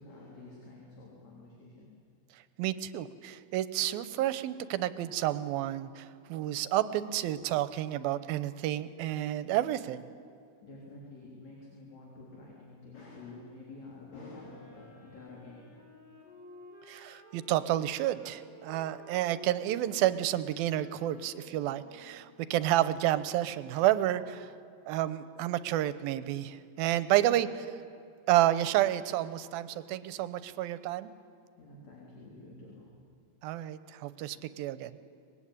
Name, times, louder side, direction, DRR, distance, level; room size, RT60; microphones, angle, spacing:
voice 1, 0.0-1.9 8.9-9.0 10.6-15.7 27.1-27.3 31.6-33.1, left 2 dB, 50° left, -3 dB, 4.6 m, -49 dB
voice 2, 2.3-10.1 16.9-24.5 24.9-27.5 28.3-31.1 33.4-34.9, right 13 dB, 90° right, 14 dB, 2.7 m, -30 dB
Wind instrument woodwind instrument, 14.2-22.5, equal, 30° left, 7.2 m, -54 dB
24.5 x 20.5 x 9.9 m, 2.4 s
omnidirectional pair, 4.1 m